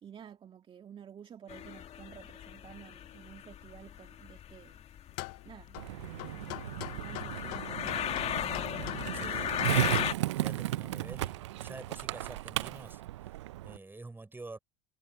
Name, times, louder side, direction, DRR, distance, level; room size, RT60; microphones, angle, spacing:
voice 1, 0.0-4.8 5.4-8.1, right 8 dB, 35° right, 2.0 m, -52 dB
sound 1, 1.5-10.1, left 10 dB, 45° left, 2.1 m, -36 dB
sound 2, 5.1-10.1, left 26 dB, 70° left, 0.7 m, -43 dB
Skateboard, 5.8-13.8, right 15 dB, 85° right, 0.4 m, -35 dB
voice 2, 9.1-14.6, right 3 dB, 15° right, 5.9 m, -48 dB
hypercardioid pair, 75°, 15 cm